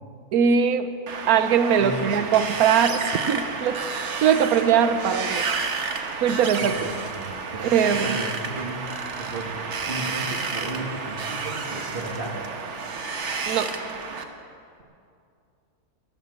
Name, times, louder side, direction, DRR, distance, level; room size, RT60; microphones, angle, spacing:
voice 1, 0.3-0.9 1.3-3.9 4.2-5.5 6.2-6.9 7.7-8.2 13.5-13.7, right 7 dB, 85° right, 11 dB, 1.2 m, -21 dB
Wind, 1.1-14.2, right 4 dB, 55° right, 1.3 m, -31 dB
voice 2, 1.8-2.3 6.6-8.8 9.2-9.6 9.9-12.5, right 2 dB, 40° right, 1 dB, 1.9 m, -34 dB
14.5 x 11.5 x 8.0 m, 2.5 s
omnidirectional pair, 1.5 m